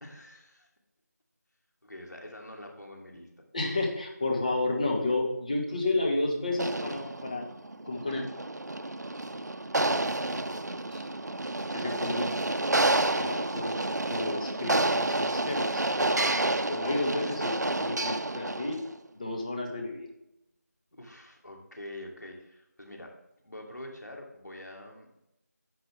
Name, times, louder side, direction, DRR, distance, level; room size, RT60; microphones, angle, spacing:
voice 1, 0.0-0.7 1.8-3.3 20.9-23.2 23.4-25.2, left 1 dB, 85° left, 1 dB, 2.8 m, -45 dB
voice 2, 3.5-7.5 7.9-8.2 10.9-11.0 11.7-12.3 13.1-16.4 16.7-18.8 19.1-20.1, left 2 dB, 25° left, 0 dB, 1.4 m, -31 dB
sound 1, 6.5-18.9, right 2 dB, 80° right, 0.6 m, -29 dB
11.0 x 7.1 x 3.4 m, 0.86 s
figure-of-eight pair, 170°, 9 cm